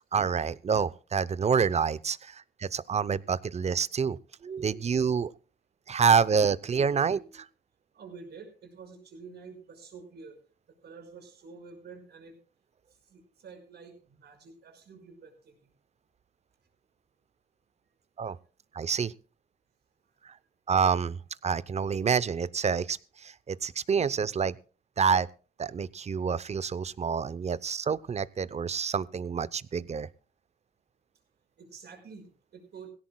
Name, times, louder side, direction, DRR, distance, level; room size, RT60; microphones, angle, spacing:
voice 1, 0.1-4.2 4.4-5.3 5.9-7.5 18.2-18.4 18.7-19.1 20.2-20.3 20.7-24.6 25.0-25.3 25.6-30.1, right 6 dB, 40° right, 18 dB, 0.7 m, -27 dB
voice 2, 7.9-10.4 10.7-12.4 13.1-15.7 31.6-32.9, right 5 dB, 65° right, 4 dB, 5.8 m, -48 dB
18.0 x 17.0 x 2.3 m, 0.36 s
cardioid pair, 105°, 18 cm